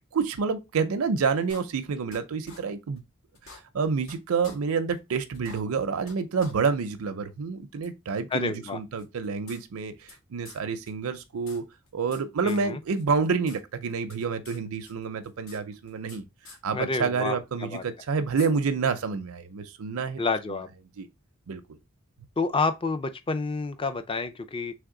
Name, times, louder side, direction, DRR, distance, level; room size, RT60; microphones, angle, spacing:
voice 1, 0.1-3.0 3.4-11.6 11.9-16.2 16.6-20.2 21.0-21.1 21.5-21.8, right 5 dB, 75° right, 0.5 m, -28 dB
sound 1, 1.5-2.2 2.5-2.6 3.0-3.1 3.3-4.2 4.4-4.6 5.0-5.1 5.3-6.1 6.4-6.5 6.9-7.0 7.8-7.9 9.0-10.2 10.4-10.6 10.9-11.0 11.2-12.2 12.5-12.6 13.0-13.6 13.8-14.6 14.9-16.2 16.4-16.6 17.7-17.8 18.4-18.5, left 3 dB, 70° left, 1.4 m, -47 dB
voice 2, 8.3-8.8 12.4-12.8 16.7-17.8 20.2-20.7 22.4-24.7, left 4 dB, 25° left, 0.5 m, -29 dB
3.4 x 3.4 x 3.7 m
head